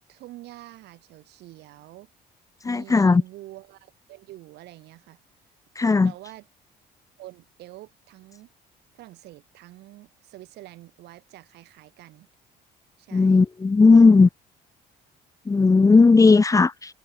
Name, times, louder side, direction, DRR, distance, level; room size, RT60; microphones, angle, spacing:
voice 1, 0.1-2.1 2.6-5.2 6.0-6.5 7.2-8.5 8.9-12.3 13.0-13.4, right 16 dB, 80° right, 7.6 m, -46 dB
voice 2, 2.6-3.2 5.8-6.1 13.1-14.3 15.5-16.9, left 4 dB, 20° left, 1.0 m, -16 dB
cardioid pair, 110°, 17 cm